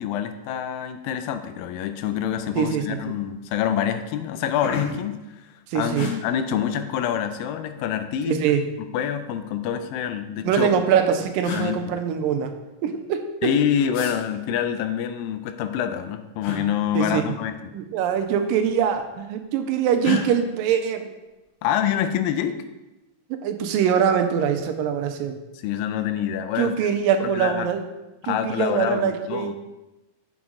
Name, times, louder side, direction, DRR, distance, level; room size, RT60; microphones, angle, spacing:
voice 1, 0.0-8.4 8.9-10.7 11.5-12.0 13.4-17.7 21.6-22.6 25.6-26.9 27.2-27.7 28.2-29.5, left 9 dB, 85° left, 9 dB, 2.3 m, -26 dB
sound 1, 2.3-2.5 2.8-3.3 3.9-4.0 4.2-5.2 5.9-6.1 7.4-8.0 9.2-10.0 10.9-11.0 11.4-11.7 13.9-14.2 16.4-16.6 18.0-18.2 18.5-19.1 20.0-20.2, left 5 dB, 65° left, 1.9 m, -32 dB
voice 2, 2.6-3.0 5.7-6.1 8.3-8.6 10.4-12.5 12.8-13.5 16.9-17.3 17.7-21.1 23.3-25.4 26.6-27.8 28.3-29.6, right 8 dB, 80° right, 6 dB, 2.3 m, -23 dB
8.5 x 6.1 x 3.7 m, 1.0 s
omnidirectional pair, 4.0 m